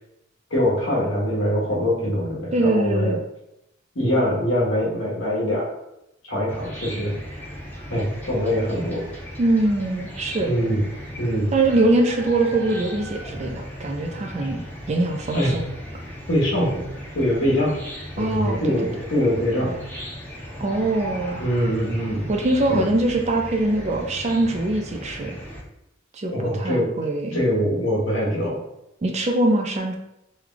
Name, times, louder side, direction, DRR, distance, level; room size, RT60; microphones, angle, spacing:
voice 1, 0.5-3.1 3.9-5.7 6.3-7.1 7.9-9.1 10.4-10.8 11.2-11.5 15.3-15.6 16.3-16.8 17.1-17.7 18.2-19.7 21.4-22.3 22.7-22.9 26.3-26.9 27.3-28.6, equal, 70° left, -4 dB, 1.2 m, -23 dB
voice 2, 2.5-3.2 9.4-10.5 11.5-15.6 18.2-18.8 20.6-21.4 22.3-25.4 26.1-27.4 29.0-30.0, right 2 dB, 35° right, 2 dB, 0.4 m, -22 dB
Chicken rooster / Cricket, 6.5-25.6, equal, 10° left, 0.7 m, -37 dB
3.1 x 2.3 x 3.7 m, 0.85 s
head